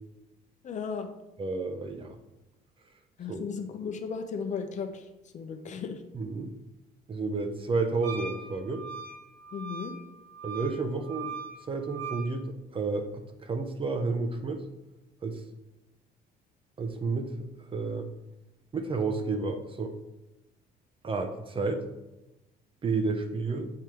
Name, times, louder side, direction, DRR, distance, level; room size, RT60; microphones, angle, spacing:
voice 1, 0.6-1.1 3.2-5.1 5.3-6.0 9.5-9.9, left 6 dB, 45° left, 6 dB, 0.8 m, -35 dB
voice 2, 1.4-2.2 3.3-3.4 6.1-6.5 7.1-8.8 10.4-11.3 11.7-13.1 13.4-14.6 15.2-15.4 16.8-18.1 18.7-19.9 21.0-21.8 22.8-23.7, right 3 dB, 30° right, 7 dB, 0.8 m, -31 dB
Wind instrument woodwind instrument, 8.0-12.3, right 6 dB, 90° right, 2.4 m, -40 dB
7.6 x 3.4 x 4.5 m, 0.98 s
cardioid pair, 110°, 17 cm